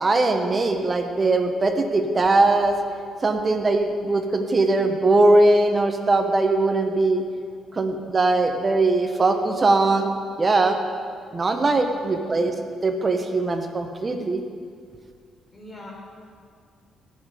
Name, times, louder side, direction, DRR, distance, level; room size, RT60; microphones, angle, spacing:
voice 1, 0.0-2.7 3.2-7.2 7.7-10.1 10.4-10.8 11.3-12.5 12.8-14.4, right 2 dB, 30° right, 6 dB, 1.1 m, -20 dB
voice 2, 15.5-15.9, left 1 dB, 25° left, -2 dB, 4.0 m, -43 dB
18.0 x 7.6 x 5.1 m, 2.1 s
cardioid pair, 90°, 0 cm